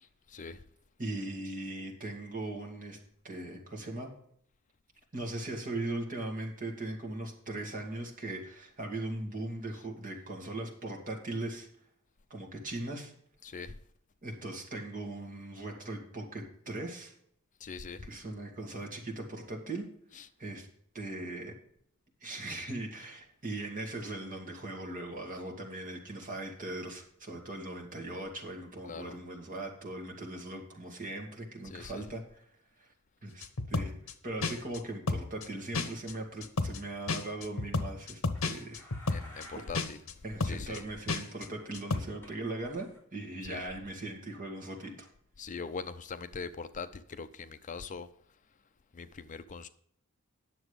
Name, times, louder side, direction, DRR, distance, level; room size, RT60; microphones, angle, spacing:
voice 1, 0.3-0.6 13.4-13.7 17.6-18.1 20.1-20.3 28.8-29.2 31.6-32.0 38.5-38.6 39.1-40.0 40.4-40.8 43.4-43.7 45.4-48.1 48.9-49.7, left 5 dB, 35° left, 0.5 m, -42 dB
voice 2, 1.0-3.0 3.2-4.1 5.1-11.7 12.3-13.1 14.2-17.1 18.0-19.9 20.1-20.7 20.9-21.5 22.2-32.4 32.8-32.9 33.2-33.9 34.2-38.9 39.5-39.7 40.2-45.1, right 2 dB, 40° right, 2.4 m, -39 dB
sound 1, 33.4-34.1 34.4-34.8 35.1-35.5 35.7-36.1 36.4-36.8 37.1-39.5 39.7-40.1 40.4-40.8 41.1-41.5 41.7-42.0, left 3 dB, 65° left, 1.0 m, -32 dB
sound 2, 38.3-39.9 40.2-40.4 40.7-42.3 42.6-43.0 44.8-44.9, equal, 10° left, 3.1 m, -55 dB
10.0 x 7.0 x 5.2 m
head